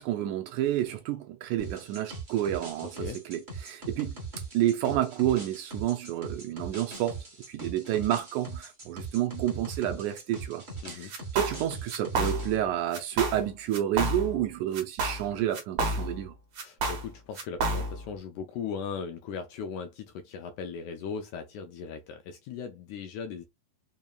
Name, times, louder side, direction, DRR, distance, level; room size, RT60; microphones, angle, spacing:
voice 1, 0.0-4.1 4.5-16.3, right 12 dB, 80° right, 1.9 m, -30 dB
sound 1, 1.6-12.5, right 3 dB, 35° right, 0.7 m, -41 dB
sound 2, 11.1-11.6 11.9-12.6 12.9-13.5 13.7-14.5 14.7-16.3 16.6-18.1, right 2 dB, 55° right, 1.7 m, -30 dB
voice 2, 16.6-23.4, left 6 dB, 80° left, 1.7 m, -38 dB
5.4 x 2.8 x 2.3 m
omnidirectional pair, 3.8 m